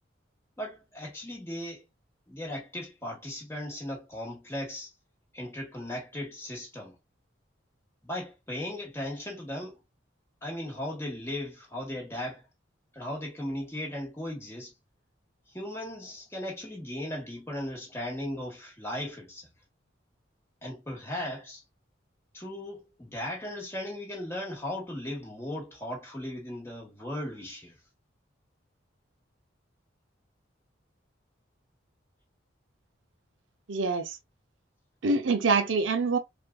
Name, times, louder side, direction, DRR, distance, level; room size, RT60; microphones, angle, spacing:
voice 1, 0.6-1.8 2.3-4.9 5.3-7.0 8.0-9.8 10.4-12.5 12.9-14.7 15.5-19.5 20.6-21.6 22.3-27.8, left 1 dB, 15° left, 1.5 m, -37 dB
voice 2, 33.7-34.2 35.0-36.2, right 4 dB, 75° right, 0.6 m, -25 dB
4.5 x 2.5 x 2.3 m
head